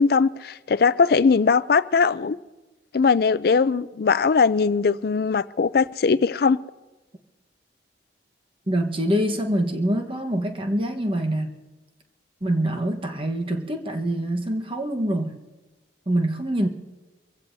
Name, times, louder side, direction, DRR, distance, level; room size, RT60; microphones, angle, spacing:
voice 1, 0.0-2.4 2.9-6.6, left 5 dB, 55° left, 0.4 m, -20 dB
voice 2, 8.7-11.5 12.4-15.4 16.1-16.7, right 1 dB, 30° right, 1.2 m, -25 dB
24.0 x 15.5 x 2.7 m
head